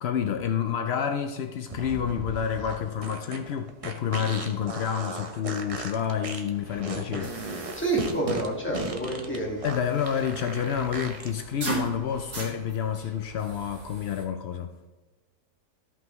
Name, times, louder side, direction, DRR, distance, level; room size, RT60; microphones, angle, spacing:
voice 1, 0.0-7.4 9.6-14.7, left 8 dB, 80° left, 0.5 m, -29 dB
sound 1, 1.7-11.3, right 3 dB, 35° right, 0.6 m, -37 dB
sound 2, 6.5-14.2, right 3 dB, 50° right, 2.5 m, -40 dB
voice 2, 7.8-9.6, right 2 dB, 5° left, 1.8 m, -28 dB
14.0 x 5.5 x 3.1 m
omnidirectional pair, 1.7 m